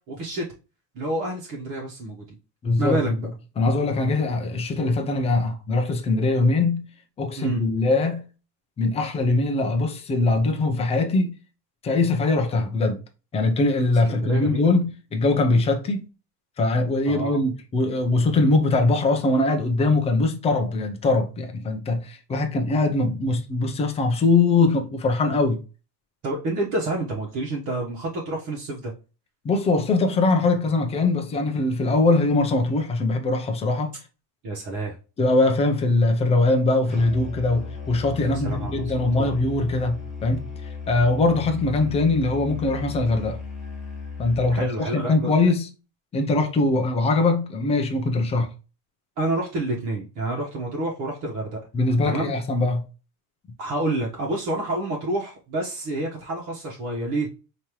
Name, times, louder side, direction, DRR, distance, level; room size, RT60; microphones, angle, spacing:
voice 1, 0.1-0.5 0.9-2.4 2.8-3.3 7.4-7.6 14.1-14.7 17.1-17.4 26.2-28.9 34.4-34.9 38.2-39.3 44.5-45.3 49.2-51.6 52.0-52.3 53.6-57.3, right 2 dB, 45° right, 1.2 m, -28 dB
voice 2, 2.6-3.2 3.6-6.8 7.2-8.2 8.8-11.3 11.8-13.0 13.3-16.0 16.6-25.6 29.4-33.9 35.2-40.5 40.9-43.4 44.2-45.7 46.1-48.5 51.7-52.8, left 2 dB, 15° left, 0.4 m, -22 dB
Musical instrument, 36.9-44.7, left 5 dB, ahead, 1.2 m, -36 dB
5.1 x 2.9 x 3.0 m
cardioid pair, 175°, 43 cm